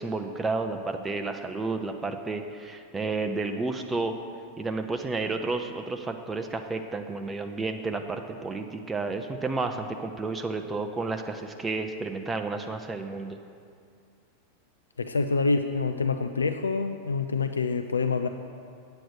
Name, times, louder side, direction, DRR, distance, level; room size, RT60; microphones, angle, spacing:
voice 1, 0.0-4.1 4.6-13.4, right 3 dB, 15° right, 5 dB, 0.5 m, -31 dB
voice 2, 15.0-18.3, left 4 dB, 75° left, 8 dB, 0.3 m, -26 dB
8.6 x 7.8 x 6.4 m, 2.3 s
figure-of-eight pair, 90°, 0 cm